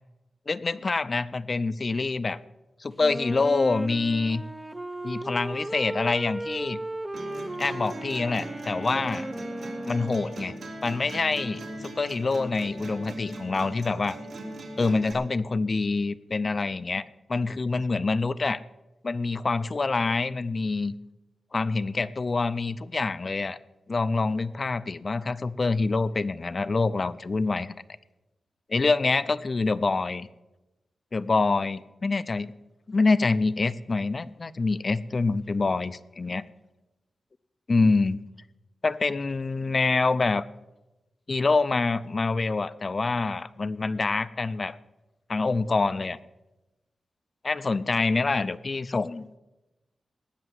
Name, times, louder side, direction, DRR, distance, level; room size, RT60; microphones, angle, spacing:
voice 1, 0.5-2.4 2.8-4.4 5.0-6.8 7.6-9.3 9.9-10.6 10.8-14.2 14.8-18.6 19.0-21.0 21.5-23.6 23.9-27.7 28.7-30.3 31.1-32.5 32.9-36.4 37.7-38.2 38.8-40.4 41.3-44.8 45.3-46.2 47.4-49.3, left 3 dB, 35° left, 16 dB, 0.5 m, -26 dB
Wind instrument woodwind instrument, 3.0-10.7, right 1 dB, 10° right, 0.5 m, -36 dB
sound 1, 7.1-15.1, right 1 dB, 85° right, 3.2 m, -39 dB
18.5 x 6.6 x 7.7 m, 1.0 s
wide cardioid pair, 155°, 0 cm